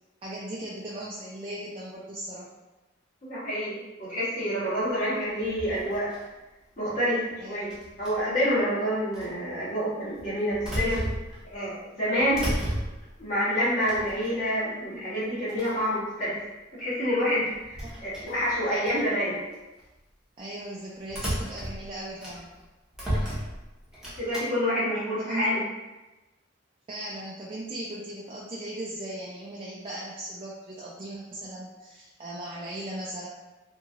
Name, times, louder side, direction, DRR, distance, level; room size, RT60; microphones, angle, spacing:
voice 1, 0.2-2.5 7.4-7.7 17.8-17.9 20.4-22.5 25.2-25.5 26.9-33.3, right 1 dB, 25° right, -6 dB, 0.3 m, -38 dB
voice 2, 3.3-6.1 6.8-7.7 8.0-11.0 11.4-12.5 13.2-16.4 16.7-19.4 24.2-25.6, equal, 40° left, -10 dB, 1.4 m, -27 dB
sound 1, 5.4-6.4 7.7-8.4 9.1-9.3 10.1-11.6 12.0-13.2 13.8-14.6 15.2-15.3 15.5-15.9 17.4-19.0 19.5-19.8 21.1-22.6 22.9-24.4, equal, 5° right, 0.7 m, -34 dB
2.9 x 2.7 x 2.5 m, 1.1 s
head